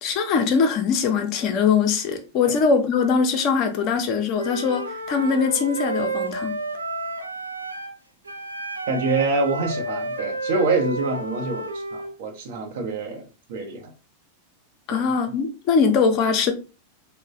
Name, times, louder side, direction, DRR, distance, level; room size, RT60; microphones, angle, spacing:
voice 1, 0.0-6.6 14.9-16.5, left 5 dB, 40° left, 0.5 m, -22 dB
Wind instrument woodwind instrument, 4.3-8.0 8.2-12.1, right 2 dB, 80° right, 0.4 m, -31 dB
voice 2, 8.9-13.9 14.9-15.0, right 3 dB, 55° right, 0.7 m, -26 dB
3.0 x 2.1 x 2.5 m
figure-of-eight pair, 90°, 0 cm